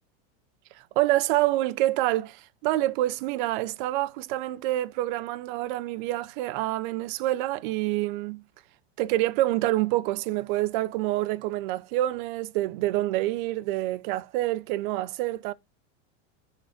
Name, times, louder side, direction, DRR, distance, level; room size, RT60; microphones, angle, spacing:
voice 1, 1.0-8.4 9.0-15.5, right 16 dB, 50° right, 0.6 m, -27 dB
10.5 x 4.0 x 2.5 m
supercardioid pair, 155°, 34 cm